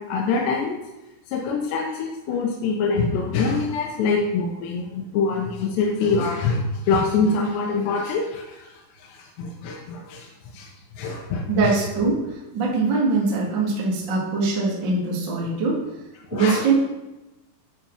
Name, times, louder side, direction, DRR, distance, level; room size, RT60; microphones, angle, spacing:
voice 1, 0.1-0.8 1.3-10.3 10.5-10.7 10.9-11.7 16.3-16.7, left 4 dB, 80° left, -1 dB, 3.0 m, -25 dB
voice 2, 11.5-12.2 12.5-15.8 16.3-16.7, right 3 dB, 50° right, -4 dB, 1.4 m, -22 dB
10.0 x 4.5 x 5.3 m, 1.0 s
omnidirectional pair, 5.1 m